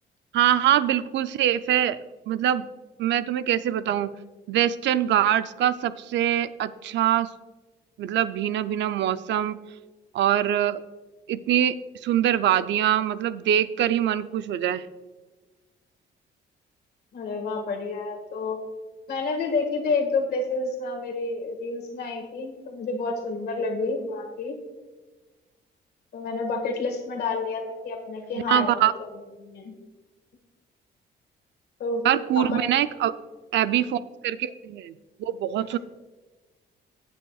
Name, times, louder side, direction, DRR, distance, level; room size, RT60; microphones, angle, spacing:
voice 1, 0.3-2.0 2.3-2.7 3.0-4.1 4.5-7.3 8.0-9.6 10.1-10.8 11.3-11.8 12.0-14.9 28.5-28.9 32.0-33.1 33.5-34.9 35.2-35.8, right 11 dB, 80° right, 13 dB, 0.5 m, -23 dB
voice 2, 17.1-18.6 19.1-24.6 26.1-28.8 29.4-29.8 31.8-32.0 32.4-32.6, left 3 dB, 65° left, 3 dB, 1.7 m, -29 dB
15.5 x 8.5 x 2.4 m, 1.2 s
cardioid pair, 160°, 18 cm